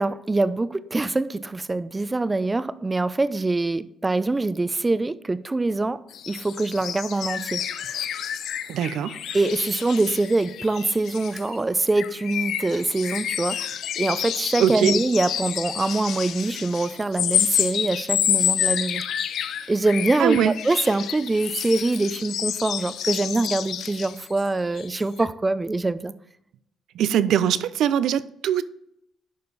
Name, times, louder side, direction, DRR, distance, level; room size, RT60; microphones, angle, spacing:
voice 1, 0.0-7.6 7.9-8.0 9.3-13.6 14.0-19.0 19.7-26.1, right 2 dB, 20° right, 0.6 m, -24 dB
sound 1, 6.1-11.6 11.9-24.5 24.7-24.9 25.2-25.3, left 9 dB, 75° left, 0.5 m, -29 dB
voice 2, 8.7-9.2 14.6-14.9 20.2-20.5 26.9-28.6, right 9 dB, 80° right, 0.5 m, -21 dB
11.0 x 5.1 x 4.1 m
cardioid pair, 90°, 0 cm